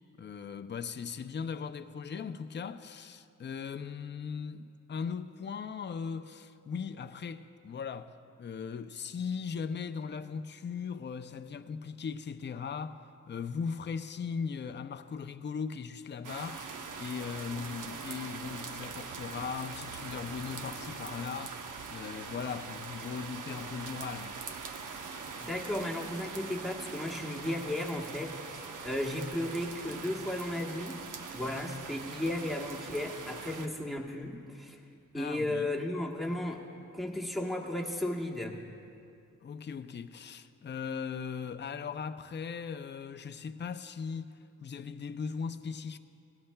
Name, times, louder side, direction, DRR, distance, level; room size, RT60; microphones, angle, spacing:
voice 1, 0.2-8.1 8.4-13.0 13.3-21.6 21.9-24.4 35.1-35.7 39.4-44.3 44.6-46.0, left 6 dB, 35° left, 0.4 m, -38 dB
sound 1, 16.2-33.7, right 5 dB, 85° right, 0.8 m, -42 dB
voice 2, 25.4-31.1 31.3-34.8 35.1-36.7 36.9-38.6, left 1 dB, ahead, 1.2 m, -35 dB
18.0 x 17.0 x 2.2 m
wide cardioid pair, 110°, 31 cm